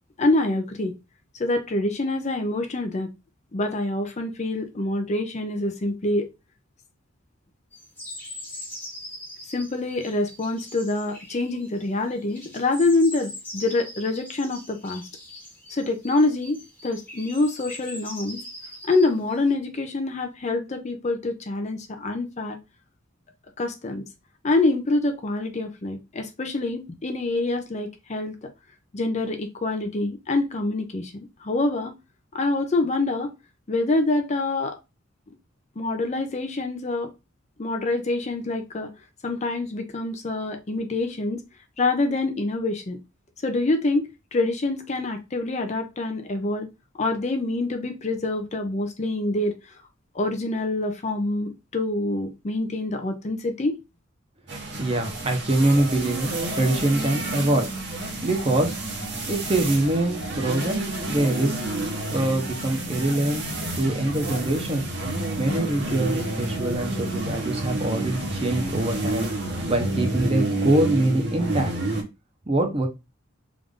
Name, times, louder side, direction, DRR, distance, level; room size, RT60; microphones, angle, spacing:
voice 1, 0.2-0.9 1.4-3.1 3.5-6.3 9.5-15.0 15.7-18.4 18.9-22.6 23.6-24.0 24.4-28.3 28.9-31.1 31.4-31.9 32.3-33.3 33.7-34.8 35.8-37.1 37.6-38.9 39.2-41.4 41.8-43.0 43.4-46.7 47.0-49.6 50.2-53.8, left 2 dB, 35° left, 0.5 m, -26 dB
sound 1, 7.7-19.5, left 1 dB, 10° left, 1.0 m, -41 dB
sound 2, 54.5-72.0, right 2 dB, 55° right, 1.1 m, -29 dB
voice 2, 54.8-57.7 58.2-58.8 59.3-60.8 61.1-61.6 61.9-63.4 63.8-64.8 65.4-69.3 69.7-71.7 72.5-72.9, right 1 dB, 30° right, 0.8 m, -24 dB
3.5 x 2.6 x 3.6 m
head